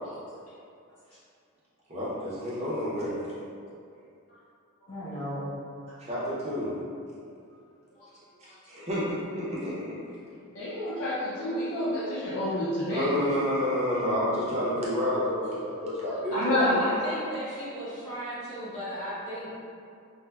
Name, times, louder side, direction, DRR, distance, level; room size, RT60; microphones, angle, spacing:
voice 1, 1.9-3.2 6.0-6.7 8.7-10.0 12.9-16.6, equal, 30° right, -8 dB, 0.5 m, -29 dB
voice 2, 4.9-5.6 7.9-8.1 8.4-8.5 16.3-19.6, equal, 85° left, -13 dB, 1.5 m, -34 dB
voice 3, 10.5-13.1 16.4-16.7, left 1 dB, 60° left, -8 dB, 0.4 m, -29 dB
3.1 x 2.1 x 2.3 m, 2.4 s
head